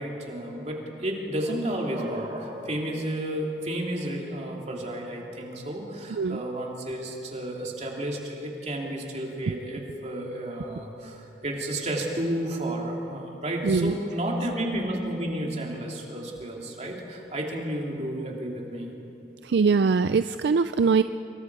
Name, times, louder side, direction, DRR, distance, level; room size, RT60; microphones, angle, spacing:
voice 1, 0.0-18.9, right 1 dB, 40° right, -1 dB, 2.9 m, -32 dB
voice 2, 6.1-6.4 13.6-13.9 19.4-21.0, right 5 dB, 70° right, 11 dB, 0.4 m, -22 dB
26.5 x 23.0 x 4.8 m, 3.0 s
head